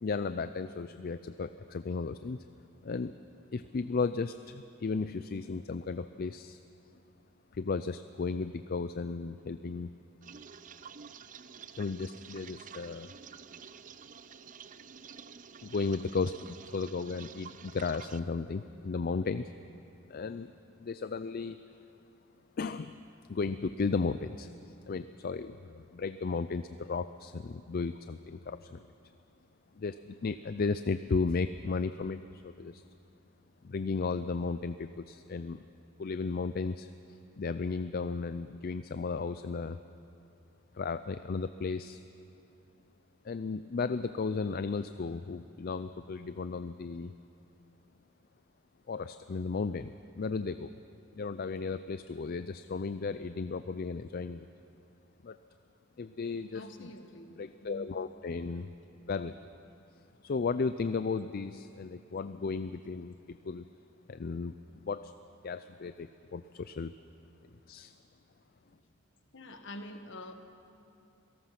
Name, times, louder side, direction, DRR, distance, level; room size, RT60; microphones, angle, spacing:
voice 1, 0.0-2.4 2.8-3.1 3.5-6.6 7.5-9.9 11.8-13.1 15.6-19.5 20.1-20.5 20.8-21.6 22.6-23.0 23.3-28.8 29.8-32.8 33.6-35.7 36.0-36.9 37.4-39.8 40.8-42.0 43.2-47.1 48.9-50.7 51.1-54.5 55.2-55.4 56.0-56.6 57.4-58.7 59.1-59.4 60.2-63.7 64.1-64.5 64.8-65.1 65.4-66.9 67.7-67.9, left 4 dB, 45° left, 12 dB, 0.4 m, -34 dB
sound 1, 10.2-18.2, right 7 dB, 40° right, 0.5 m, -50 dB
voice 2, 56.5-57.9 68.7-68.8 69.3-70.3, left 1 dB, 65° left, 7 dB, 1.5 m, -46 dB
27.0 x 18.0 x 5.9 m, 2.8 s
head